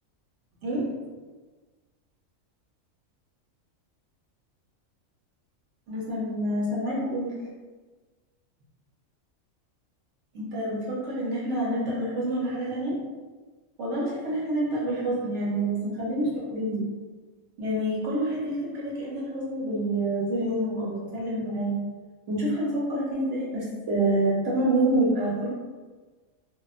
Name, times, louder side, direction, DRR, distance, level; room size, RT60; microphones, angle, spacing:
voice 1, 5.9-7.4 10.3-13.0 13.8-16.8 17.6-21.8 22.3-25.5, right 1 dB, 60° right, -6 dB, 1.0 m, -27 dB
3.0 x 2.2 x 2.3 m, 1.3 s
omnidirectional pair, 1.4 m